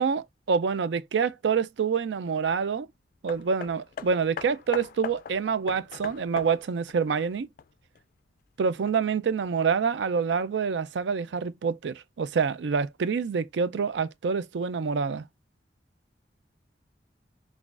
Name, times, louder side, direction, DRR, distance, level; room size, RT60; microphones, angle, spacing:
voice 1, 0.0-2.9 3.2-7.5 8.6-15.3, right 6 dB, 80° right, 0.4 m, -27 dB
Hammer, 3.3-8.0 8.8-8.9, left 7 dB, 50° left, 0.3 m, -40 dB
6.0 x 2.4 x 2.4 m
head